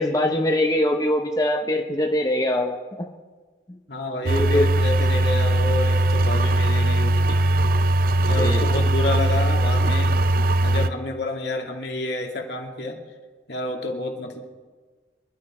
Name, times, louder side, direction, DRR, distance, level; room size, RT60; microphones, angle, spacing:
voice 1, 0.0-3.1 4.2-4.7 8.2-8.6, left 1 dB, 20° left, 3 dB, 0.9 m, -23 dB
voice 2, 3.9-7.4 8.3-10.1 10.6-13.0 13.5-14.4, left 2 dB, 70° left, 1 dB, 2.4 m, -29 dB
sound 1, 4.3-10.9, right 1 dB, 50° right, 0.6 m, -20 dB
27.0 x 12.0 x 4.4 m, 1.4 s
head